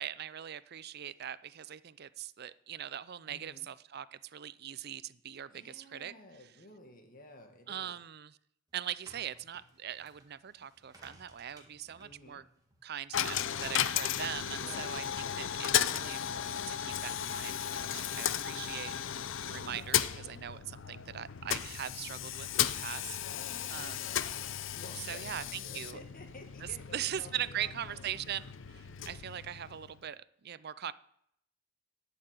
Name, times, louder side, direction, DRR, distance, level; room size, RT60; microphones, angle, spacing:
voice 1, 0.0-6.1 7.7-8.4 8.7-12.4 12.8-18.9 19.4-23.4 23.7-24.1 25.0-26.0 26.9-30.9, right 10 dB, 50° right, 17 dB, 0.5 m, -41 dB
voice 2, 3.3-3.7 5.5-8.0 12.0-12.4 14.5-14.9 18.4-18.8 23.4-24.3 24.6-28.1 28.8-29.0, left 1 dB, 45° left, 5 dB, 2.0 m, -53 dB
sound 1, 8.7-14.9, right 1 dB, 20° right, 2.2 m, -62 dB
Coin (dropping), 13.1-30.1, left 10 dB, 70° left, 0.6 m, -35 dB
11.0 x 6.8 x 9.0 m, 0.71 s
head